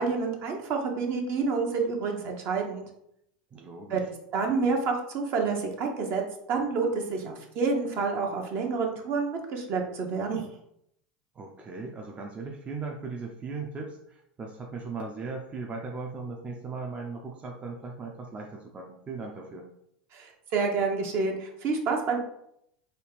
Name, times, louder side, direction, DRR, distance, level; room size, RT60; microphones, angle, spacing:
voice 1, 0.0-2.8 3.9-4.0 4.3-6.2 6.5-10.4 20.1-22.2, right 4 dB, 50° right, 2 dB, 0.9 m, -28 dB
voice 2, 3.5-4.1 4.6-4.8 11.3-19.7, right 4 dB, 25° right, 1 dB, 0.5 m, -38 dB
4.1 x 2.4 x 3.4 m, 0.75 s
hypercardioid pair, 100°, 5 cm